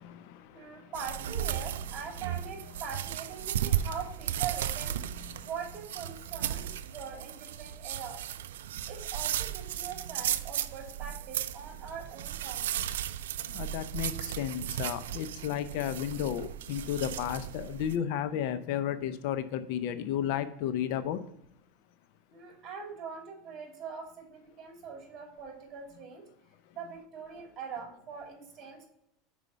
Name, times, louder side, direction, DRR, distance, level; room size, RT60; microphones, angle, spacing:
voice 1, 0.0-0.9 5.2-5.4 13.5-21.2, left 10 dB, 65° left, 11 dB, 0.5 m, -33 dB
voice 2, 0.5-4.9 5.4-8.2 8.9-12.7 22.3-26.3 26.7-28.9, right 6 dB, 40° right, 2 dB, 2.3 m, -42 dB
sound 1, 0.9-17.9, right 11 dB, 90° right, 0.3 m, -35 dB
5.1 x 4.8 x 5.5 m, 0.78 s
supercardioid pair, 120°, 0 cm